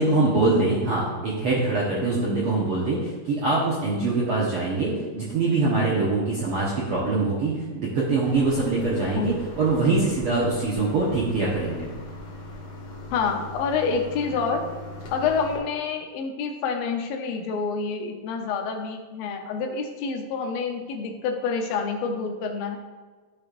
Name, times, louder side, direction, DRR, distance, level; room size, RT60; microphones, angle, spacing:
voice 1, 0.0-11.9, right 3 dB, 80° right, -6 dB, 1.2 m, -23 dB
sound 1, 8.2-15.6, left 2 dB, 55° left, 1.9 m, -39 dB
voice 2, 13.1-14.7 15.1-22.8, left 5 dB, 80° left, 3 dB, 2.5 m, -28 dB
13.5 x 5.2 x 2.5 m, 1.3 s
omnidirectional pair, 4.2 m